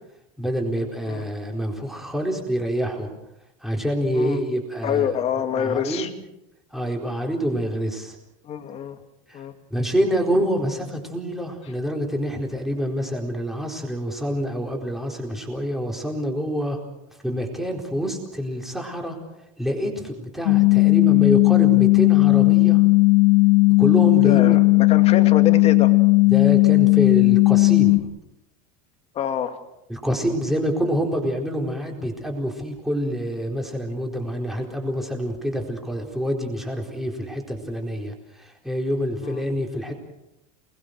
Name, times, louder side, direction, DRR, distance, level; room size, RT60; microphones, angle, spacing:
voice 1, 0.4-3.1 3.6-5.1 5.5-6.1 6.7-8.2 9.3-9.4 9.7-16.8 17.2-19.2 19.6-22.8 23.8-24.6 26.3-28.1 29.9-39.9, equal, ahead, 1 dB, 4.2 m, -26 dB
voice 2, 4.8-6.1 8.4-9.0 9.3-9.5 24.2-25.9 29.1-29.6 39.2-39.5, left 8 dB, 30° left, 7 dB, 2.3 m, -26 dB
sound 1, 20.5-28.0, left 25 dB, 85° left, 2.4 m, -15 dB
28.5 x 20.5 x 6.5 m, 0.87 s
supercardioid pair, 155°, 20 cm